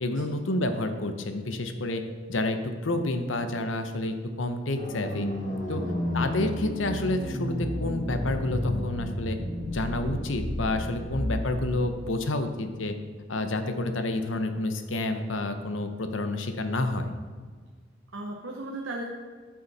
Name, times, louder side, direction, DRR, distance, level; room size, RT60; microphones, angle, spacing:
voice 1, 0.0-2.0 2.3-5.3 5.7-5.8 6.1-9.4 9.7-13.0 13.3-17.2, left 2 dB, 80° left, 7 dB, 0.9 m, -29 dB
sound 1, 4.8-11.8, left 1 dB, 40° left, 1.8 m, -32 dB
voice 2, 5.7-6.0 18.1-19.0, right 2 dB, 85° right, -1 dB, 1.1 m, -37 dB
13.5 x 6.3 x 4.2 m, 1.6 s
head